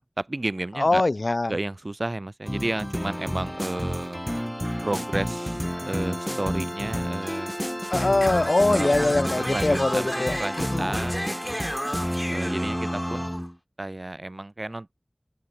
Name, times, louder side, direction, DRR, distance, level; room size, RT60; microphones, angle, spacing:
voice 1, 0.2-1.0 1.5-4.2 4.8-7.5 8.7-11.6 12.3-13.3 13.8-14.9, right 2 dB, 55° right, 2.8 m, -32 dB
voice 2, 0.8-1.6 7.9-11.0, left 2 dB, 75° left, 0.7 m, -23 dB
sound 1, 2.5-13.5, equal, 5° left, 0.6 m, -29 dB
open air
wide cardioid pair, 45°, 0 cm